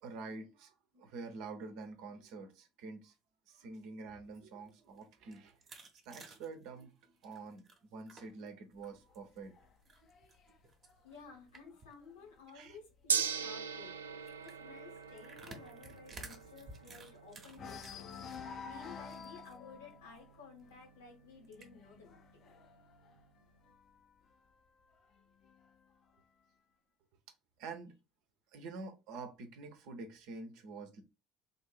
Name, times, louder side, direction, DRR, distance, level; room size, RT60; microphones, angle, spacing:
voice 1, 0.0-3.1 3.5-5.6 6.1-7.6 7.9-9.5 12.5-12.8 27.6-27.9 28.5-31.0, right 4 dB, 60° right, 0.8 m, -47 dB
sound 1, 4.6-8.5 8.8-9.4 9.8-11.9 12.3-12.4 12.6-12.8 13.1-13.4 14.3-18.4 18.8-19.6 19.9-20.0 20.3-20.4 21.4-21.6, right 2 dB, 35° right, 1.0 m, -54 dB
sound 2, 8.8-12.4 12.8-13.1 13.4-13.5 13.9-17.1 17.5-24.1 24.9-25.9, left 6 dB, 45° left, 0.7 m, -51 dB
voice 2, 11.0-14.0 14.4-18.2 18.7-22.4, left 5 dB, 75° left, 1.4 m, -55 dB
Gong, 13.1-23.3, right 6 dB, 80° right, 0.3 m, -42 dB
3.7 x 2.7 x 3.8 m
figure-of-eight pair, 60°, 0 cm